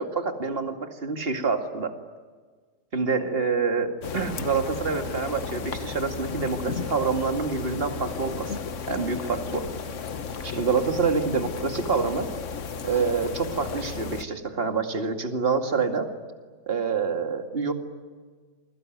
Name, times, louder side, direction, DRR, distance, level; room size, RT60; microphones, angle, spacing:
voice 1, 0.0-1.9 2.9-9.7 10.4-12.3 12.8-16.1 16.7-17.7, right 4 dB, 35° right, 5 dB, 2.4 m, -27 dB
sound 1, 4.0-14.2, left 5 dB, 50° left, 1.3 m, -34 dB
28.5 x 22.5 x 9.4 m, 1.5 s
omnidirectional pair, 1.8 m